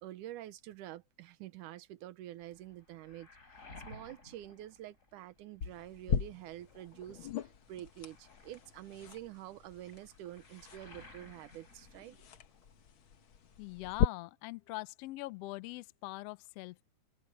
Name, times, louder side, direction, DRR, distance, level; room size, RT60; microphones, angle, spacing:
voice 1, 0.0-3.3 3.9-7.3 7.7-12.2, right 13 dB, 80° right, 2.4 m, -47 dB
Waves surf, 2.4-5.6 5.9-12.9 13.1-14.1, left 2 dB, 25° left, 3.9 m, -57 dB
sound 1, 5.6-14.0, left 7 dB, 60° left, 1.5 m, -39 dB
voice 2, 13.6-16.8, left 20 dB, 80° left, 1.4 m, -43 dB
omnidirectional pair, 3.6 m